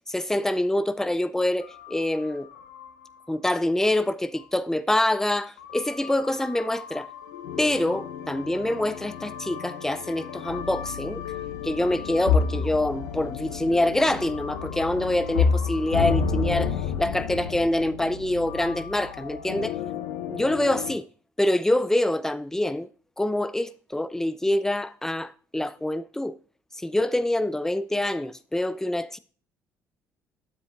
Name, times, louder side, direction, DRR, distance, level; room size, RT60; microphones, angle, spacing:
voice 1, 0.1-2.5 3.3-7.1 7.6-11.2 11.6-19.7 20.3-21.0 21.4-22.9 23.2-26.3 26.8-29.2, left 1 dB, 5° left, 0.6 m, -25 dB
sound 1, 1.6-3.2 3.5-3.6 4.3-4.4 5.6-20.9, left 6 dB, 90° left, 0.8 m, -31 dB
9.6 x 7.9 x 2.5 m
hypercardioid pair, 60°, 8 cm